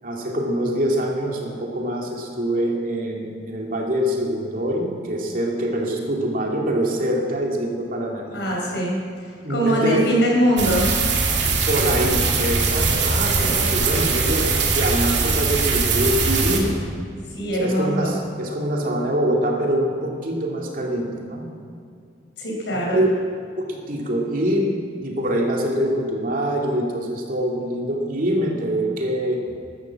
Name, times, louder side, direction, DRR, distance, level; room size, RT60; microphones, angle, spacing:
voice 1, 0.0-8.6 9.4-10.1 11.7-16.7 17.6-21.5 22.7-23.2 23.6-29.4, right 1 dB, 50° right, 0 dB, 2.6 m, -24 dB
voice 2, 8.3-9.0 9.5-10.9 13.2-13.7 17.3-18.1 22.4-23.0, equal, 75° left, -2 dB, 5.0 m, -22 dB
sound 1, 10.6-16.6, right 4 dB, 70° right, 2.5 m, -21 dB
13.0 x 12.5 x 7.5 m, 2.3 s
head